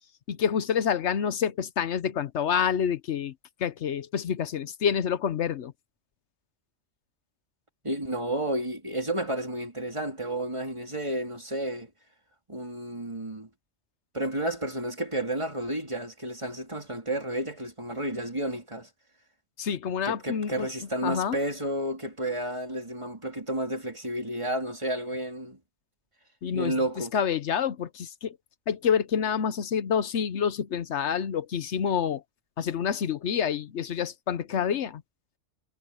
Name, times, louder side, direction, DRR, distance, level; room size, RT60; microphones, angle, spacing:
voice 1, 0.3-3.3 3.6-5.7 19.6-20.7 21.0-21.4 26.4-26.8 27.1-28.4 28.7-32.2 32.6-35.0, left 8 dB, 75° left, 1.1 m, -27 dB
voice 2, 7.8-11.9 12.5-13.5 14.1-18.9 20.0-25.6 26.5-27.1, right 1 dB, 25° right, 3.3 m, -31 dB
omnidirectional pair, 1.2 m